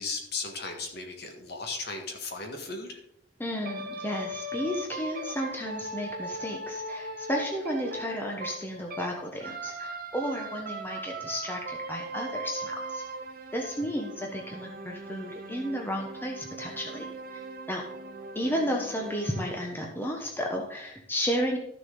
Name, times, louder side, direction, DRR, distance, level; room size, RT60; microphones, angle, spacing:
voice 1, 0.0-3.0, left 3 dB, 50° left, 3 dB, 1.5 m, -36 dB
voice 2, 3.4-13.0 13.5-17.1 17.3-17.8 18.3-21.6, equal, 10° left, 0 dB, 1.1 m, -33 dB
sound 1, 3.6-9.1 9.4-19.7, right 1 dB, 45° right, 0.8 m, -39 dB
13.0 x 6.6 x 3.8 m, 0.77 s
head